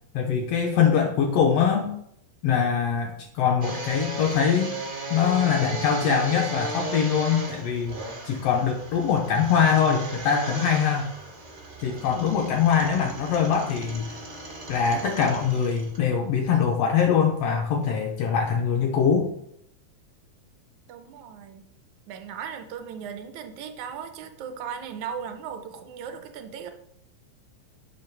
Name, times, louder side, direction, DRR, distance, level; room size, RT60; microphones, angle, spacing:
voice 1, 0.1-1.9 2.4-4.7 5.1-8.0 8.2-11.1 11.8-14.2 14.7-19.3, left 7 dB, 75° left, 2 dB, 1.4 m, -23 dB
sound 1, 3.6-16.0 16.5-16.6 17.1-17.2, right 2 dB, 50° right, 0.6 m, -36 dB
voice 2, 20.9-21.6 22.1-26.7, right 7 dB, 85° right, 7 dB, 2.0 m, -37 dB
6.9 x 3.1 x 5.8 m, 0.74 s
omnidirectional pair, 3.3 m